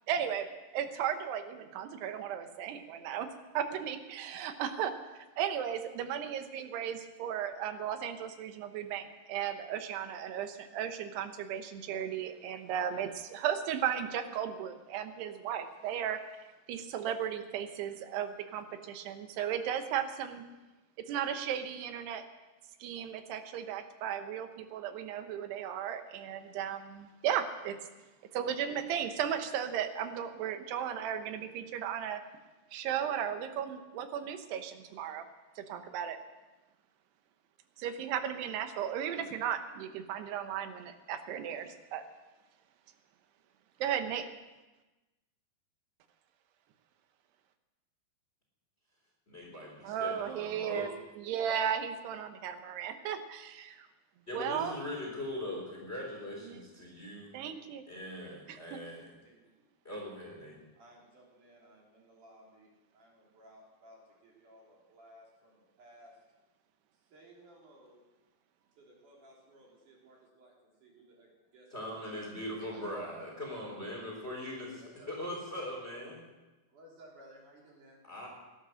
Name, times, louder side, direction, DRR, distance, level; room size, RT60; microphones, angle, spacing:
voice 1, 0.1-0.5 0.7-3.3 3.5-16.2 16.7-20.4 21.1-22.2 22.8-27.8 28.3-32.2 32.7-35.3 35.6-36.2 37.8-42.0 43.8-44.3 49.8-50.9 51.2-53.9 54.3-54.8 56.4-56.6 57.3-57.8 58.5-58.8, right 9 dB, 85° right, 8 dB, 3.2 m, -35 dB
voice 2, 49.3-50.9 54.3-57.3 57.9-59.1 59.8-60.6 71.7-76.2 78.0-78.3, left 1 dB, 15° left, -1 dB, 3.6 m, -40 dB
voice 3, 58.0-58.3 58.8-59.7 60.8-66.1 67.1-68.0 68.6-72.2 72.6-73.3 74.8-75.3 76.7-78.0, right 1 dB, 50° right, -2 dB, 4.5 m, -58 dB
18.0 x 11.5 x 6.4 m, 1.1 s
omnidirectional pair, 4.6 m